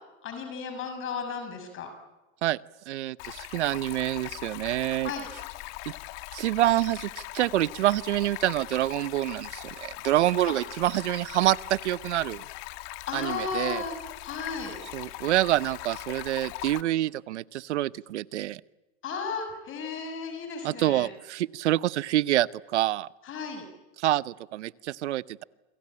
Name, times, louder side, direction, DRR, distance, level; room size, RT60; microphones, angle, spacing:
voice 1, 0.2-1.9 5.0-5.3 10.4-10.6 13.1-14.0 14.2-14.8 19.0-21.1 23.2-23.7, left 5 dB, 40° left, 6 dB, 6.5 m, -34 dB
voice 2, 2.9-5.1 6.3-12.4 13.1-13.8 14.9-18.6 20.6-23.1 24.0-25.4, right 14 dB, 90° right, 19 dB, 0.9 m, -27 dB
Stream, 3.2-16.8, left 18 dB, 60° left, 2.0 m, -41 dB
28.5 x 23.5 x 8.8 m, 1.1 s
supercardioid pair, 120°, 34 cm